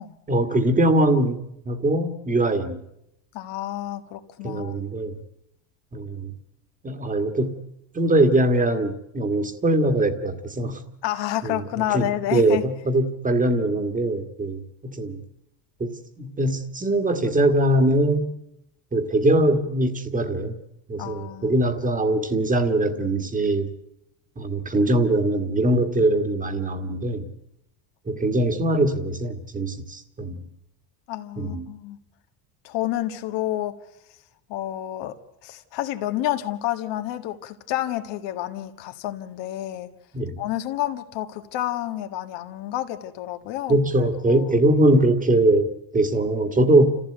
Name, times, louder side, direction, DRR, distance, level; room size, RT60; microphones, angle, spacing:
voice 1, 0.3-2.8 4.4-5.2 5.9-6.3 6.8-7.6 7.9-10.8 11.4-11.6 11.9-15.2 15.8-15.9 16.2-18.3 18.9-20.6 20.9-23.7 24.4-27.3 28.1-30.4 31.4-31.7 40.1-40.4 43.7-47.0, right 1 dB, 15° right, 1.9 m, -22 dB
voice 2, 3.3-4.8 11.0-12.6 21.0-21.6 31.1-32.0 32.6-33.8 34.5-35.2 35.4-39.9 40.4-43.8 44.3-44.5, left 13 dB, 65° left, 1.7 m, -29 dB
28.5 x 15.0 x 8.0 m
cardioid pair, 135°, 46 cm